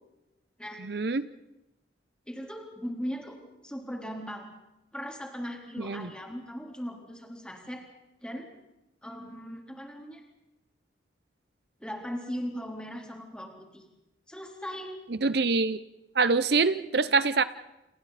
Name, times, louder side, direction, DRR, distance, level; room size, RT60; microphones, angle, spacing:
voice 1, 0.8-1.3 5.8-6.1 15.2-15.8 16.1-17.4, right 4 dB, 60° right, 14 dB, 0.7 m, -25 dB
voice 2, 2.3-3.4 3.6-4.5 4.9-7.9 8.2-8.5 9.0-10.2 11.8-13.8 14.3-15.0, equal, 5° left, 1 dB, 4.0 m, -38 dB
29.5 x 29.0 x 4.2 m, 0.94 s
head